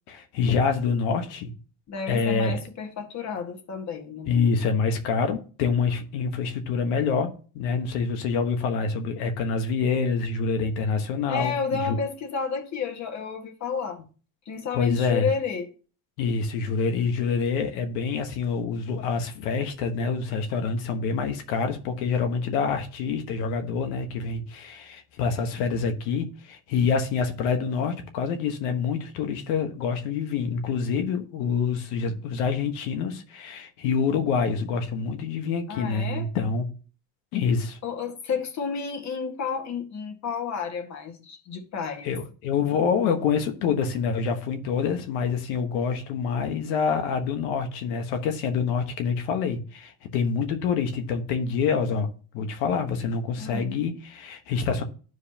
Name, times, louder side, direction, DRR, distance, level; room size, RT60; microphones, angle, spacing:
voice 1, 0.1-1.5 2.1-2.6 4.3-12.0 14.7-15.3 16.2-36.7 37.3-37.8 42.0-52.1 52.3-54.8, left 5 dB, 90° left, 1.4 m, -26 dB
voice 2, 1.9-4.3 11.3-14.0 14.5-15.7 35.7-36.3 37.8-42.1 53.4-53.7, left 5 dB, 45° left, 1.7 m, -31 dB
12.0 x 4.8 x 2.9 m
cardioid pair, 120°, 40 cm